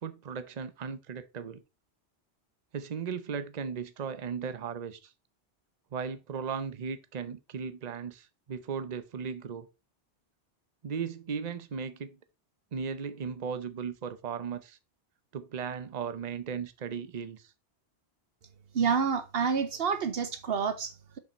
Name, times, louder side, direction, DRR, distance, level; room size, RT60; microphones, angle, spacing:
voice 1, 0.0-1.6 2.7-5.1 5.9-9.7 10.8-12.2 12.7-14.8 15.3-17.5, right 6 dB, 45° right, 0.8 m, -36 dB
voice 2, 18.7-21.2, right 6 dB, 65° right, 0.9 m, -28 dB
7.0 x 5.6 x 4.3 m
omnidirectional pair, 1.1 m